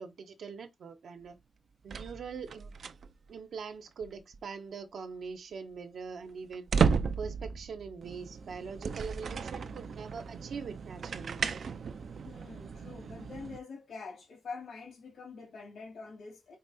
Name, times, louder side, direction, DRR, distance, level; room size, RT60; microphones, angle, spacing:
voice 1, 0.0-1.3 1.8-2.7 3.3-6.7 7.2-11.6, right 5 dB, 80° right, 1.2 m, -42 dB
sound 1, 1.9-3.3 4.0-4.4 6.4-13.6, right 6 dB, 65° right, 0.6 m, -34 dB
voice 2, 12.2-16.6, left 4 dB, 75° left, 2.7 m, -45 dB
4.8 x 4.7 x 4.2 m
wide cardioid pair, 135°, 0 cm